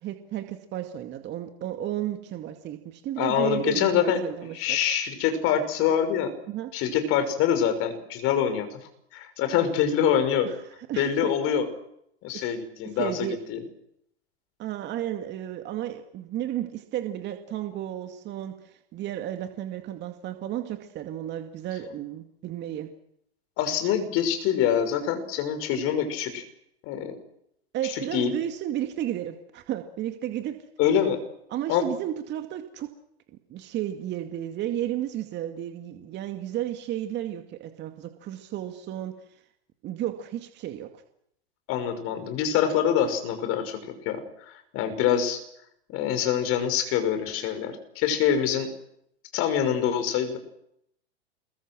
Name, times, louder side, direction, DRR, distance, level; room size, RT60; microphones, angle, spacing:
voice 1, 0.0-4.8 6.5-6.7 10.4-10.6 10.9-11.3 12.3-12.4 12.9-13.4 14.6-22.9 27.7-30.6 31.5-32.9 33.5-39.1 39.8-40.9, right 12 dB, 35° right, 6 dB, 2.3 m, -33 dB
voice 2, 3.2-4.2 4.5-6.3 6.7-8.8 9.1-10.5 11.0-11.7 12.2-13.6 23.6-26.4 26.9-27.2 28.1-28.3 30.8-31.2 31.7-31.9 41.7-43.8 44.0-45.4 45.9-48.7 49.3-50.4, left 9 dB, 45° left, 8 dB, 6.1 m, -25 dB
29.0 x 22.5 x 6.3 m, 0.75 s
hypercardioid pair, 105°, 32 cm